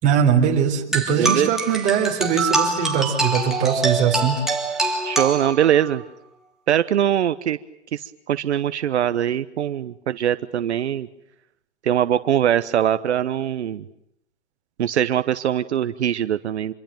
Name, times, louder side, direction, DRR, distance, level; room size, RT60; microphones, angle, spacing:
voice 1, 0.0-4.4 4.9-5.0, right 7 dB, 20° right, 2 dB, 4.0 m, -21 dB
sound 1, 0.9-5.9, right 3 dB, ahead, 3.2 m, -24 dB
voice 2, 1.2-1.5 5.0-6.0 6.7-7.6 7.9-11.1 11.8-13.8 14.8-16.7, right 10 dB, 70° right, 12 dB, 1.1 m, -22 dB
27.0 x 23.0 x 9.1 m, 0.76 s
hypercardioid pair, 150°, 35 cm